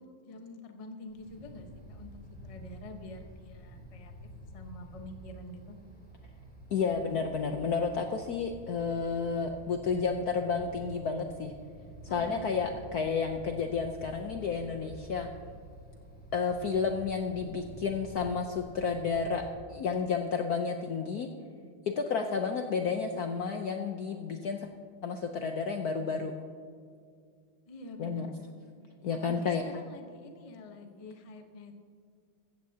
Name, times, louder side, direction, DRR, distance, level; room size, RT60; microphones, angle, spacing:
voice 1, 0.0-2.1 2.4-4.1 4.5-5.8 12.1-12.7 27.7-28.5 29.1-31.8, left 1 dB, 45° left, 4 dB, 0.4 m, -46 dB
Wind, 1.1-19.5, equal, 5° left, 3.6 m, -49 dB
voice 2, 6.7-11.5 12.0-15.3 16.3-19.4 19.7-21.3 21.9-24.7 25.0-26.3 28.0-28.3 29.0-29.6, left 5 dB, 70° left, 4 dB, 0.9 m, -31 dB
15.0 x 15.0 x 2.8 m, 2.2 s
omnidirectional pair, 2.4 m